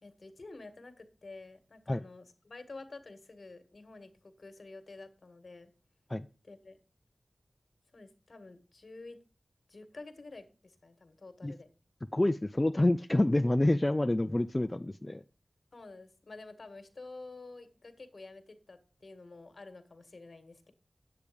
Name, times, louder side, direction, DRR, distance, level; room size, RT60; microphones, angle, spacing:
voice 1, 0.0-5.7 6.4-6.8 7.9-9.2 9.7-11.7 15.7-20.7, left 3 dB, 60° left, 9 dB, 1.8 m, -49 dB
voice 2, 12.1-15.2, left 1 dB, 25° left, 8 dB, 0.5 m, -27 dB
10.0 x 8.4 x 5.2 m, 0.34 s
wide cardioid pair, 80°, 0 cm